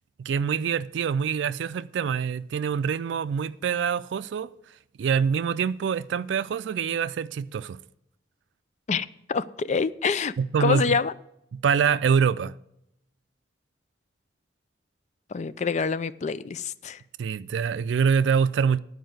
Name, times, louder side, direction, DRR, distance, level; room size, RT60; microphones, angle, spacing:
voice 1, 0.2-4.5 5.0-7.8 10.4-11.0 11.5-12.5 17.2-18.8, right 6 dB, 90° right, 0.3 m, -25 dB
voice 2, 8.9-10.3 10.6-11.1 15.3-17.0, left 5 dB, 40° left, 0.4 m, -26 dB
11.0 x 4.7 x 7.7 m
head